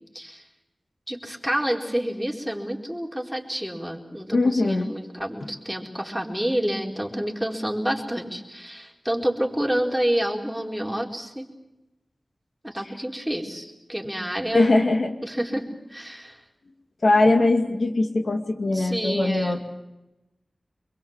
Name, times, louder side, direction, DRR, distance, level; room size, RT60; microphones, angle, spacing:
voice 1, 1.1-11.4 12.6-14.7 15.2-16.4 18.7-19.6, equal, 5° right, 0 dB, 4.5 m, -28 dB
voice 2, 4.3-4.9 14.5-15.1 17.0-19.6, left 2 dB, 65° left, 3 dB, 2.3 m, -21 dB
26.0 x 22.5 x 7.4 m, 0.98 s
wide cardioid pair, 60°, 0 cm